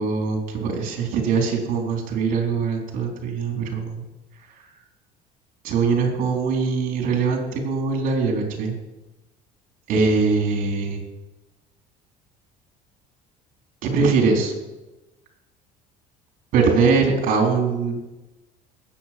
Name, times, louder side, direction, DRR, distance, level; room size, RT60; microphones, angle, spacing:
voice 1, 0.0-4.0 5.6-8.8 9.9-11.0 13.8-14.5 16.5-18.0, right 4 dB, 55° right, 1 dB, 4.1 m, -22 dB
19.0 x 8.4 x 6.1 m, 1.1 s
cardioid pair, 150°, 16 cm